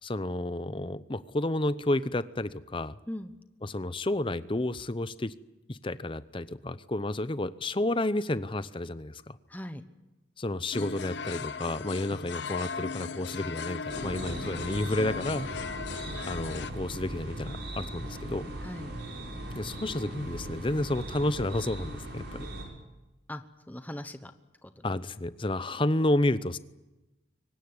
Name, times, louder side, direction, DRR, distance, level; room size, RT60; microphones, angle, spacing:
voice 1, 0.0-3.0 3.6-5.3 5.7-9.4 10.4-15.5 16.2-18.5 19.6-22.5 24.8-26.6, left 1 dB, 25° left, 15 dB, 0.7 m, -31 dB
voice 2, 9.5-9.8 18.6-18.9 23.3-24.3 24.6-24.8, left 1 dB, 10° left, 9 dB, 1.0 m, -40 dB
sound 1, 10.7-16.7, left 5 dB, 65° left, 0.8 m, -37 dB
sound 2, 13.9-22.6, right 1 dB, 60° right, 6.8 m, -39 dB
23.5 x 19.0 x 9.7 m, 1.1 s
head